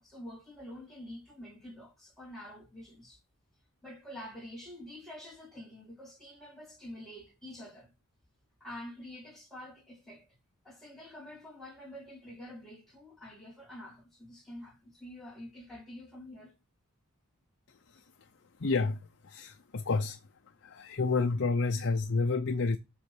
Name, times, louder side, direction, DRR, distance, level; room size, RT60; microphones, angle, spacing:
voice 1, 0.0-3.2 3.8-7.9 8.6-10.3 10.6-16.5, left 1 dB, ahead, 2.9 m, -47 dB
voice 2, 18.6-20.2 20.6-22.8, left 3 dB, 55° left, 0.7 m, -30 dB
8.3 x 3.3 x 6.1 m
head